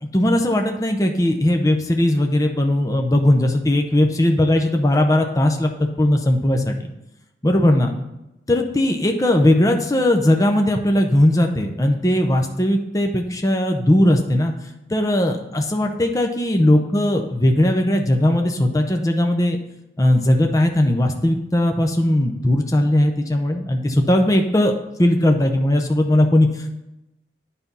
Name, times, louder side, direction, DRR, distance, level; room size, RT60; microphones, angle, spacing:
voice 1, 0.0-6.7 7.4-7.9 8.5-14.5 14.9-19.6 20.0-24.7 25.0-26.7, left 1 dB, 20° left, 3 dB, 0.6 m, -18 dB
9.4 x 4.2 x 5.4 m, 0.92 s
head